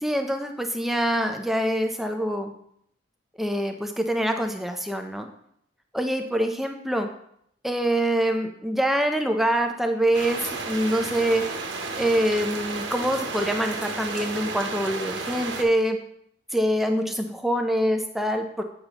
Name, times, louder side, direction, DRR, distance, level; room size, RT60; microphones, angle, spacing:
voice 1, 0.0-2.5 3.4-5.3 5.9-7.1 7.6-11.5 11.9-16.0 16.5-18.6, right 1 dB, ahead, 5 dB, 0.4 m, -25 dB
sound 1, 10.1-15.6, right 3 dB, 90° right, 0.9 m, -32 dB
8.5 x 5.6 x 2.9 m, 0.71 s
head